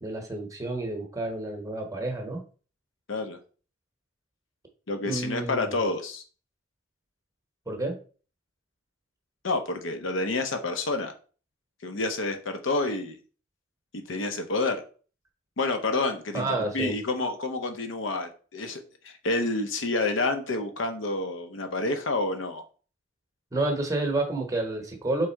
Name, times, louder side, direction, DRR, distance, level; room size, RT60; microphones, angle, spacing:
voice 1, 0.0-2.4 5.0-5.7 7.7-8.0 16.3-16.9 23.5-25.3, right 2 dB, 15° right, 3 dB, 0.9 m, -29 dB
voice 2, 4.9-6.2 9.4-11.1 11.8-13.2 13.9-14.8 15.6-22.6, left 2 dB, 75° left, 7 dB, 0.7 m, -29 dB
3.6 x 3.2 x 4.4 m, 0.39 s
head